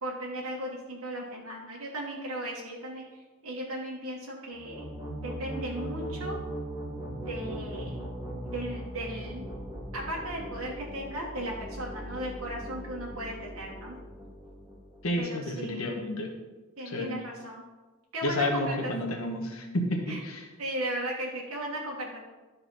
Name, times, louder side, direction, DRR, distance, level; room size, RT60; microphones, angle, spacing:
voice 1, 0.0-3.0 3.4-4.9 5.2-6.4 7.3-7.9 8.4-9.4 9.9-14.0 15.2-15.8 16.8-17.6 18.1-18.9 20.1-20.2 20.6-22.2, right 1 dB, 75° right, -4 dB, 1.3 m, -36 dB
sound 1, 4.5-15.2, right 1 dB, 15° right, 1.2 m, -39 dB
voice 2, 15.0-16.3 16.8-17.1 18.2-20.5, left 1 dB, 80° left, 2 dB, 1.3 m, -30 dB
12.0 x 4.2 x 4.1 m, 1.3 s
head